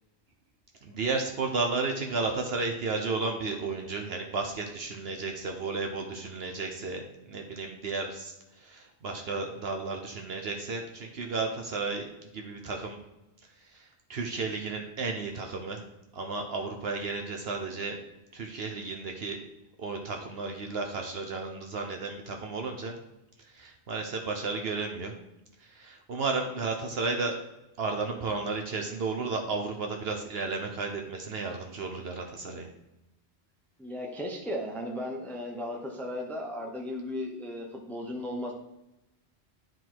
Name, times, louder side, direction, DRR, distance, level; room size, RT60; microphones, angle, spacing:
voice 1, 0.8-13.0 13.6-15.8 16.1-18.0 18.3-19.4 19.8-23.0 23.4-25.1 25.6-27.3 27.8-32.7, right 3 dB, 65° right, 3 dB, 1.1 m, -33 dB
voice 2, 33.8-38.5, left 1 dB, ahead, 0 dB, 0.9 m, -36 dB
11.0 x 3.9 x 4.6 m, 0.91 s
omnidirectional pair, 1.1 m